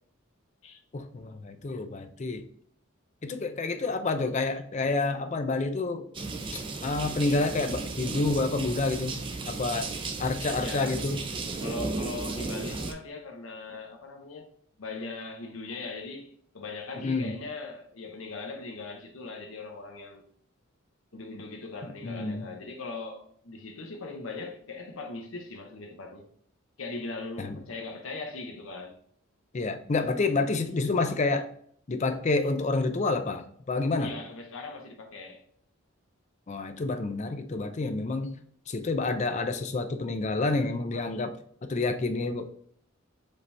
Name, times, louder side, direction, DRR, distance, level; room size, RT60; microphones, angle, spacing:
voice 1, 0.9-2.5 3.2-6.1 6.5-9.2 9.5-9.9 10.2-11.2 17.0-17.3 22.0-22.4 27.4-27.6 29.5-31.5 31.9-34.2 36.5-38.3 38.7-41.3 41.7-42.5, left 3 dB, 35° left, 0.4 m, -28 dB
sound 1, 6.1-12.9, right 3 dB, 25° right, 0.4 m, -35 dB
voice 2, 10.6-11.0 11.6-14.5 14.8-20.2 21.1-26.2 26.8-29.0 34.0-35.4, left 3 dB, 75° left, 0.8 m, -40 dB
5.1 x 2.8 x 3.3 m
head